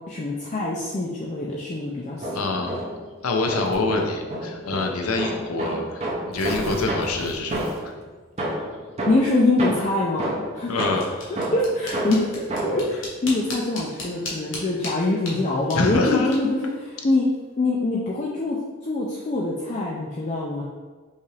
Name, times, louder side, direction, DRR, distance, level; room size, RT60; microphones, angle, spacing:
voice 1, 0.1-2.6 8.4-8.5 9.1-10.3 10.5-10.8 11.5-12.3 12.6-17.2 17.6-18.6 18.8-20.6, left 2 dB, 35° left, -4 dB, 0.4 m, -24 dB
sound 1, 2.0-3.1 3.5-8.0 8.4-12.9, right 1 dB, 30° right, 0.6 m, -30 dB
voice 2, 2.3-2.8 3.2-7.6 10.7-11.1 15.7-16.3, left 3 dB, 90° left, 2 dB, 0.6 m, -26 dB
Tearing, 3.6-4.0 4.9-5.0 5.3-5.4 6.1-8.0, right 1 dB, 75° right, 0.6 m, -38 dB
sound 2, 10.6-17.6, left 2 dB, 65° left, 1.0 m, -39 dB
5.4 x 2.5 x 3.2 m, 1.4 s
head